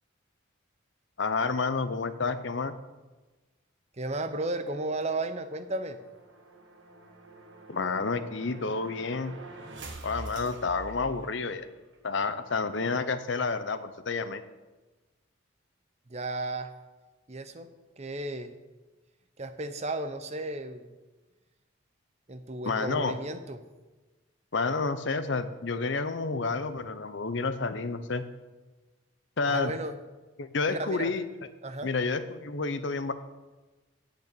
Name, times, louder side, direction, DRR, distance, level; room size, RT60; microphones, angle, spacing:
voice 1, 1.2-2.7 7.7-9.3 10.0-11.7 12.0-14.4 22.6-23.1 24.5-28.2 29.4-29.7 30.4-31.2 31.8-33.1, left 4 dB, 60° left, 11 dB, 0.7 m, -30 dB
voice 2, 3.9-6.0 16.1-16.7 17.3-17.7 18.0-18.5 19.4-20.9 22.3-23.6 29.4-30.0 30.7-31.1 31.6-31.9, right 2 dB, 30° right, 9 dB, 0.7 m, -34 dB
sound 1, 5.0-11.7, right 1 dB, 60° right, 1.4 m, -46 dB
8.3 x 6.7 x 8.4 m, 1.2 s
head